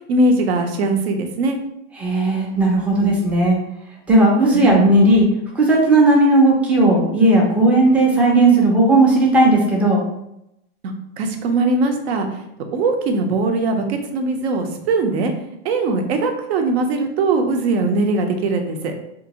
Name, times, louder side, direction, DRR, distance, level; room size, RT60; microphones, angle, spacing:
voice 1, 0.1-1.6 4.5-4.8 11.2-12.3 12.7-15.3 15.6-18.9, right 2 dB, 75° right, 5 dB, 0.7 m, -20 dB
voice 2, 2.0-3.6 4.1-5.3 5.6-10.0, right 2 dB, 5° right, -3 dB, 0.3 m, -15 dB
2.9 x 2.6 x 2.8 m, 0.81 s
supercardioid pair, 150°, 32 cm